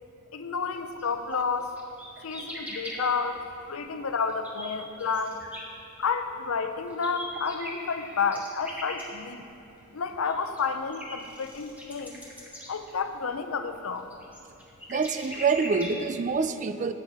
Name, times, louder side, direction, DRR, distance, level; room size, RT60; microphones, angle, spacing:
voice 1, 0.3-1.7 2.2-5.4 6.0-9.4 9.9-12.2 12.7-14.1, left 5 dB, 70° left, 8 dB, 0.6 m, -30 dB
sound 1, 1.0-1.1 1.3-3.0 3.6-3.7 4.1-6.4 6.7-16.4, equal, 5° right, 1.5 m, -41 dB
voice 2, 14.9-16.9, right 5 dB, 35° right, 11 dB, 0.3 m, -26 dB
13.5 x 8.9 x 3.5 m, 2.7 s
head